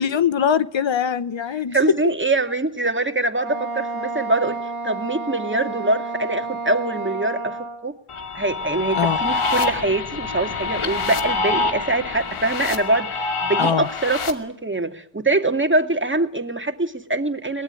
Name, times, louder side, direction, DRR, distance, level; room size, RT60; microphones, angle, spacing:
voice 1, 0.0-1.8 8.9-9.2 13.6-13.9, left 8 dB, 65° left, 1.2 m, -22 dB
voice 2, 1.7-4.6 4.8-7.9 8.3-17.6, right 2 dB, 25° right, 2.3 m, -23 dB
Wind instrument woodwind instrument, 3.4-7.9, right 3 dB, 80° right, 2.9 m, -31 dB
sound 1, 8.1-14.3, left 3 dB, 80° left, 2.6 m, -25 dB
22.5 x 19.0 x 9.9 m
cardioid pair, 60°, 49 cm